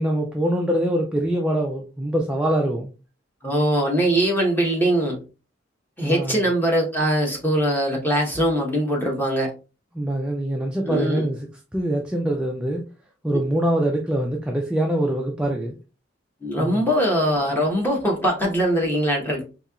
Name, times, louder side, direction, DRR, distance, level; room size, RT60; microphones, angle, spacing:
voice 1, 0.0-2.9 6.0-6.5 9.9-11.4 11.7-12.8 13.2-15.8 16.6-16.8, right 1 dB, 5° right, 0.4 m, -24 dB
voice 2, 3.4-5.2 6.0-9.5 10.9-11.3 16.4-19.4, equal, 10° left, 1.1 m, -21 dB
4.2 x 2.8 x 2.3 m
head